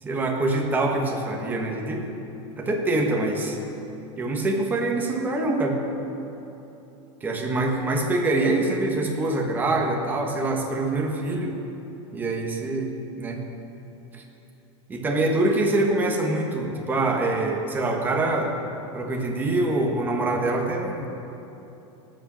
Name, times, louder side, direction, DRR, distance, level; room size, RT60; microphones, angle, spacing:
voice 1, 0.0-2.1 2.6-3.6 4.2-5.8 7.2-11.5 12.1-12.9 13.2-13.4 14.1-14.2 14.9-18.6 18.9-21.1, right 2 dB, 10° right, 1 dB, 1.3 m, -25 dB
19.0 x 6.5 x 6.2 m, 3.0 s
supercardioid pair, 165°, 16 cm